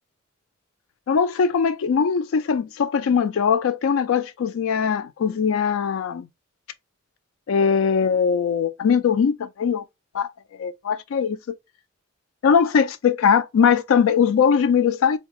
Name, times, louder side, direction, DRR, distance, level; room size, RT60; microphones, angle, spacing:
voice 1, 1.1-6.3 7.5-9.8 10.1-10.3 10.6-11.4 12.4-15.2, left 6 dB, 85° left, 0.4 m, -20 dB
3.8 x 2.2 x 2.7 m
head